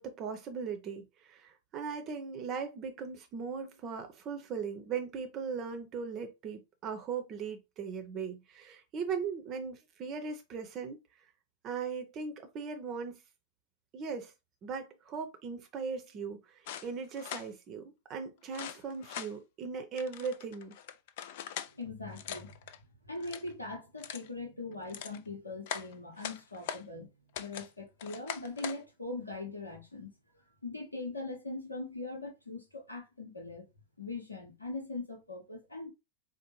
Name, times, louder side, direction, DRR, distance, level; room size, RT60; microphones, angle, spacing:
voice 1, 0.0-11.0 11.6-13.2 13.9-14.3 14.6-20.7, right 5 dB, 35° right, 0.6 m, -39 dB
sound 1, 16.7-17.5 18.5-19.3 20.0-21.7 22.1-22.8 23.1-23.5 24.0-24.3 24.7-25.2 25.7-26.8 27.3-27.7 28.0-28.8, left 9 dB, 50° left, 0.3 m, -41 dB
voice 2, 21.7-22.6 23.0-27.1 27.4-30.1 30.6-33.7 34.0-35.9, left 2 dB, 80° left, 0.9 m, -41 dB
4.2 x 2.1 x 3.0 m
figure-of-eight pair, 90°, 0 cm